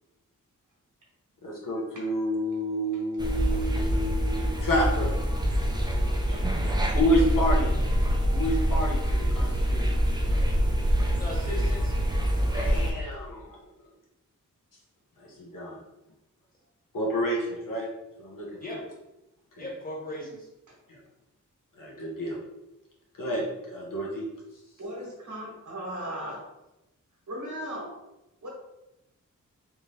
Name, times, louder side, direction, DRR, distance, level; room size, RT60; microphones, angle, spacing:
voice 1, 1.4-5.1 6.9-7.7 8.3-9.9 12.5-13.5 15.2-15.8 16.9-17.9 18.2-18.8 19.6-19.7 20.9-21.0 21.8-22.4 23.2-24.2, equal, 75° left, -3 dB, 1.1 m, -29 dB
voice 2, 1.9-2.4 2.9-3.0 3.5-3.8 12.7-12.8 24.8-26.5 27.3-27.9 28.4-28.5, equal, 65° right, -3 dB, 1.4 m, -38 dB
sound 1, 3.2-12.9, equal, 10° right, 0.6 m, -25 dB
voice 3, 11.2-11.9 18.6-18.8 19.6-20.5, left 1 dB, 25° left, -4 dB, 1.5 m, -37 dB
3.4 x 2.7 x 3.3 m, 0.94 s
cardioid pair, 70°, 33 cm